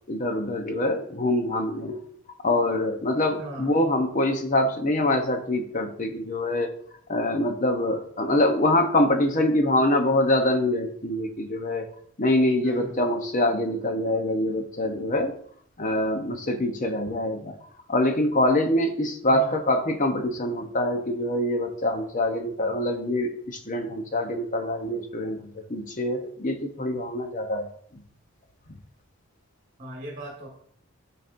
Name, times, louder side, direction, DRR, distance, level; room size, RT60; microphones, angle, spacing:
voice 1, 0.1-2.0 2.4-6.7 7.1-11.9 12.2-15.4 15.8-17.5 17.9-27.7, left 1 dB, 35° left, 5 dB, 0.8 m, -25 dB
voice 2, 3.4-3.8 12.6-13.0 19.2-19.6 24.8-25.0 29.8-30.5, right 1 dB, 30° right, -3 dB, 1.6 m, -39 dB
12.5 x 4.2 x 2.6 m, 0.62 s
head